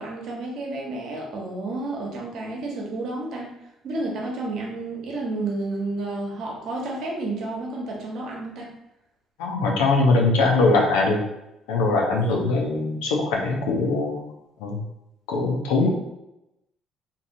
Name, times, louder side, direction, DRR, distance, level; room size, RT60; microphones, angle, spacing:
voice 1, 0.0-3.5 3.8-8.7 15.8-15.9, right 2 dB, 65° right, -1 dB, 0.9 m, -31 dB
voice 2, 9.4-11.2 11.7-14.2 14.6-14.8 15.3-15.9, left 3 dB, 80° left, 0 dB, 0.6 m, -21 dB
2.7 x 2.7 x 2.6 m, 0.88 s
hypercardioid pair, 60°, 0 cm